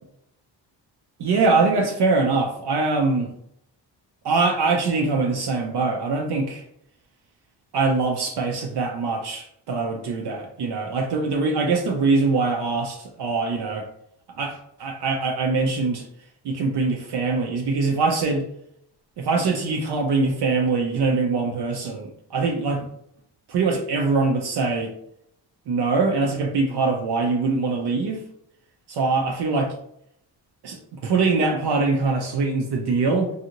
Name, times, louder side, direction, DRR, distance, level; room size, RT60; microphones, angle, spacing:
voice 1, 1.2-3.3 4.2-6.6 7.7-13.9 14.4-16.1 16.4-18.5 19.2-22.9 23.5-24.9 25.7-28.2 28.9-29.7 30.6-33.3, right 3 dB, 65° right, 1 dB, 0.6 m, -23 dB
2.6 x 2.3 x 2.8 m, 0.71 s
cardioid pair, 80°, 44 cm